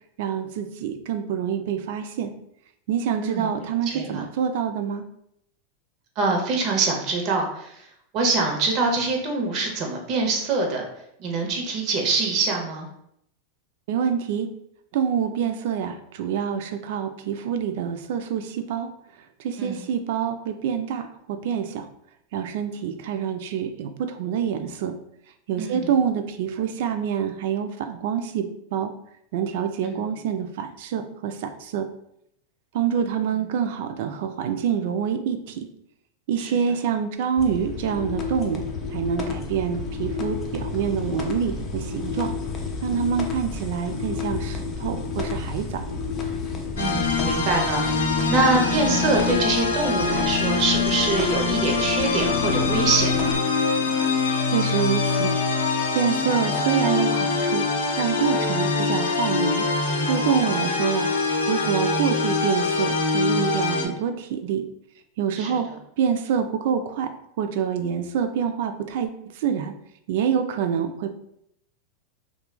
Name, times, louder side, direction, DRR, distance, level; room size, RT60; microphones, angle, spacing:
voice 1, 0.2-2.3 2.9-5.0 13.9-14.5 14.9-18.9 19.4-21.9 22.3-24.9 25.5-28.9 29.3-31.9 32.7-35.7 36.3-38.6 38.9-42.3 42.8-45.9 54.5-55.3 55.9-57.6 58.0-59.7 60.1-61.1 61.5-64.6 65.2-65.7 66.0-67.1 67.4-69.7 70.1-71.1, right 8 dB, 65° right, 8 dB, 0.3 m, -26 dB
voice 2, 3.9-4.2 6.2-7.7 8.1-10.8 11.2-12.9 19.6-19.8 25.6-25.9 29.8-30.0 36.4-36.5 46.8-47.8 48.3-53.4 65.4-65.6, right 3 dB, 45° right, 1 dB, 0.7 m, -24 dB
sound 1, 37.4-53.4, left 4 dB, 30° left, 0.5 m, -31 dB
sound 2, 46.8-63.9, left 4 dB, 85° left, 0.5 m, -24 dB
2.9 x 2.2 x 2.2 m, 0.74 s
hypercardioid pair, 110°, 0 cm